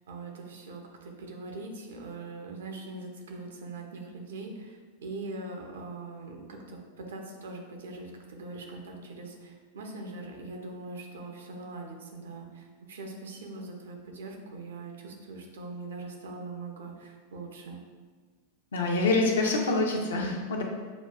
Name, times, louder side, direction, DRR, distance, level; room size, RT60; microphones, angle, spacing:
voice 1, 0.1-17.8, right 3 dB, 65° right, 2 dB, 0.5 m, -42 dB
voice 2, 18.7-20.6, left 2 dB, 65° left, 0 dB, 0.6 m, -26 dB
6.0 x 2.3 x 2.2 m, 1.5 s
figure-of-eight pair, 90°, 0 cm